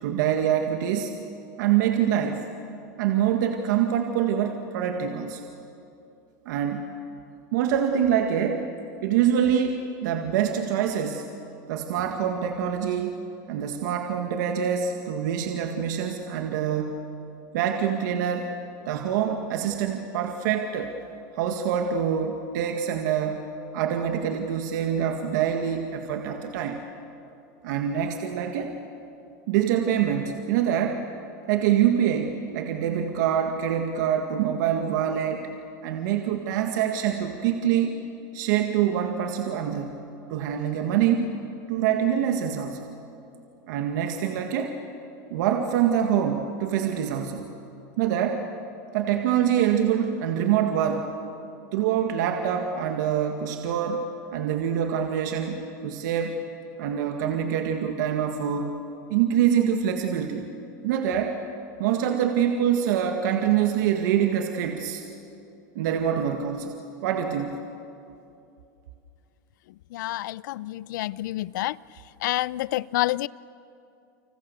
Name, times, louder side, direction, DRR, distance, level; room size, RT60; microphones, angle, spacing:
voice 1, 0.0-1.1 1.6-2.4 3.0-5.5 6.5-6.9 7.5-8.7 9.0-11.2 11.7-13.2 13.5-17.0 17.5-18.5 18.9-20.9 21.3-23.4 23.7-26.8 27.6-28.7 29.5-31.0 31.5-35.5 35.8-38.0 38.3-40.0 40.3-41.3 41.7-42.9 43.7-44.8 45.3-47.5 48.0-48.4 48.9-51.1 51.7-54.0 54.3-56.4 56.8-58.7 59.1-60.5 60.8-61.4 61.8-65.0 65.8-66.8 67.0-67.6, right 9 dB, 70° right, 4 dB, 2.0 m, -25 dB
voice 2, 69.9-71.8 72.2-73.3, left 16 dB, 75° left, 21 dB, 0.5 m, -28 dB
30.0 x 26.0 x 6.8 m, 2.7 s
supercardioid pair, 145°, 10 cm